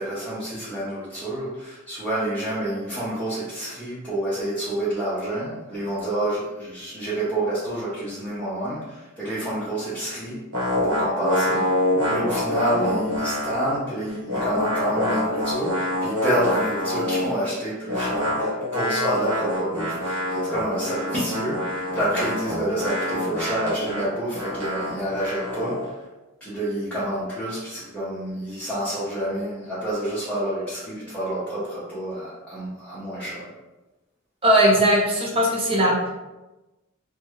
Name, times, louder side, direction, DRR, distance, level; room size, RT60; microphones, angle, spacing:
voice 1, 0.0-10.4 10.8-25.9 26.4-33.5, right 1 dB, 5° left, -12 dB, 0.9 m, -28 dB
sound 1, 10.5-13.8 14.1-17.4 17.9-25.9, left 1 dB, 70° right, 1.1 m, -26 dB
voice 2, 34.4-36.1, right 1 dB, 25° right, -3 dB, 0.7 m, -19 dB
2.9 x 2.4 x 3.0 m, 1.0 s
head